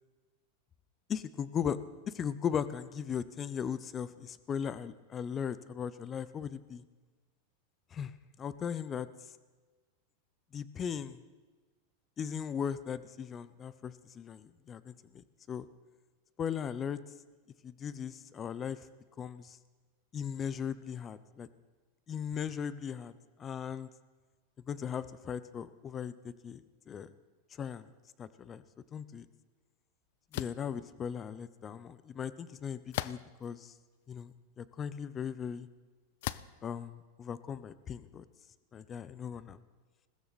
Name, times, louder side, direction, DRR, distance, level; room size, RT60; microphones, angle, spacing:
voice 1, 1.1-1.8 2.1-6.8 7.9-8.1 8.4-9.1 10.5-11.2 12.2-15.7 16.4-17.0 17.6-18.8 19.2-19.6 20.1-21.5 22.1-23.1 23.4-23.9 24.7-26.1 26.4-27.1 27.6-27.9 28.2-28.6 28.9-29.3 30.3-33.7 34.1-35.7 36.6-38.2 38.7-39.6, left 7 dB, 25° left, 15 dB, 0.7 m, -38 dB
sound 1, 30.3-30.7 32.9-33.5 34.2-34.3 36.2-36.6, left 16 dB, 65° left, 0.5 m, -37 dB
21.0 x 16.0 x 4.2 m, 1.3 s
supercardioid pair, 135°, 0 cm